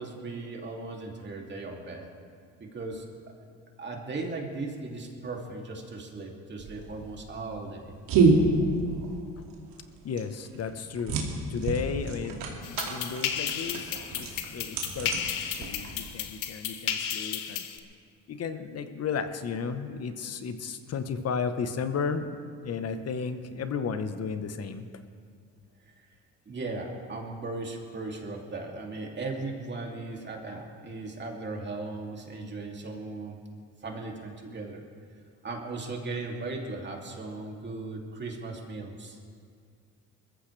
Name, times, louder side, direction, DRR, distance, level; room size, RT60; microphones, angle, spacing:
voice 1, 0.0-2.1 2.6-3.3 3.8-8.0 13.9-14.1 17.1-17.3 26.0-26.1 26.5-33.4 33.8-34.9 35.4-39.2, right 3 dB, 35° right, 0 dB, 2.7 m, -37 dB
sound 1, 6.6-16.1, right 3 dB, 80° right, 2.5 m, -28 dB
voice 2, 10.0-15.2 15.6-17.6 18.3-24.9, left 5 dB, 50° left, 9 dB, 1.2 m, -34 dB
sound 2, 12.6-17.8, left 9 dB, 80° left, 1.1 m, -33 dB
21.5 x 14.5 x 3.4 m, 2.2 s
supercardioid pair, 85°, 33 cm